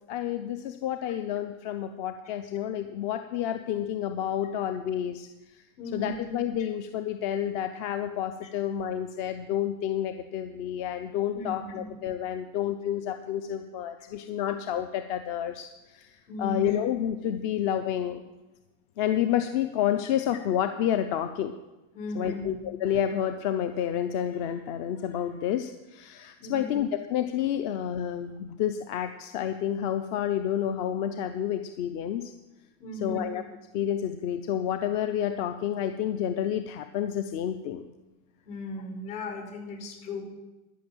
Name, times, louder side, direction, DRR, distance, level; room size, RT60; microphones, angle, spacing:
voice 1, 0.1-5.6 5.9-18.3 19.0-21.6 22.1-32.3 33.0-33.4 33.7-37.9, left 10 dB, 50° left, 9 dB, 0.7 m, -30 dB
voice 2, 5.8-6.2 11.3-11.9 16.3-16.7 21.9-22.5 26.4-26.8 32.8-33.2 38.5-40.2, left 2 dB, 70° left, 2 dB, 5.5 m, -36 dB
13.5 x 6.2 x 9.0 m, 1.1 s
supercardioid pair, 150°, 41 cm